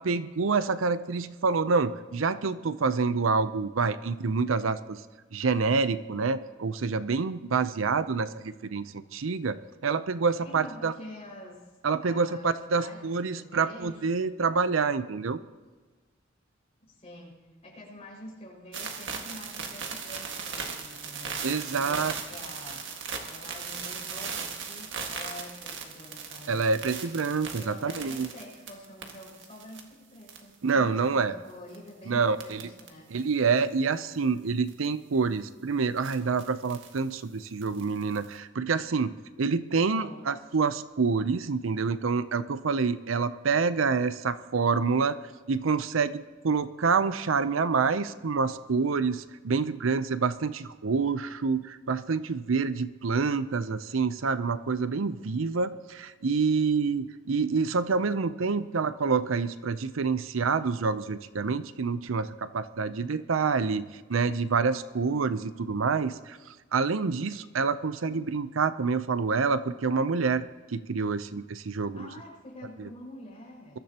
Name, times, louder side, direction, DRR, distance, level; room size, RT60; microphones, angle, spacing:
voice 1, 0.0-5.0 5.3-10.9 11.8-15.4 21.4-22.1 26.5-28.3 30.6-31.4 32.1-32.6 33.1-45.2 45.5-66.4 66.7-70.5 70.7-72.1 72.8-72.9, right 4 dB, 85° right, 13 dB, 0.6 m, -27 dB
voice 2, 10.4-11.7 12.0-14.2 16.8-17.4 17.6-22.9 23.3-26.6 27.6-33.2 39.7-40.3 71.9-73.8, left 1 dB, 35° left, -3 dB, 5.5 m, -46 dB
sound 1, 18.7-29.8 30.2-30.7 31.7-31.9 32.4-32.9 33.2-33.3 34.7-34.9 36.0-37.0 37.6-38.3, right 6 dB, 65° right, 1.8 m, -38 dB
22.0 x 14.0 x 2.9 m, 1.4 s
head